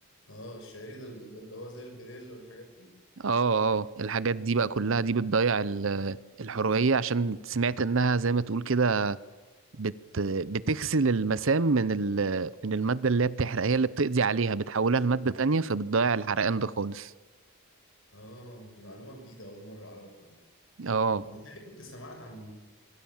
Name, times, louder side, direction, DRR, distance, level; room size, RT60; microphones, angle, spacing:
voice 1, 0.3-2.9 18.1-20.4 21.1-22.5, equal, 60° left, 6.1 m, -45 dB
voice 2, 3.2-9.2 9.8-17.1 20.8-21.2, right 4 dB, 60° right, 0.7 m, -26 dB
26.0 x 23.5 x 7.3 m
head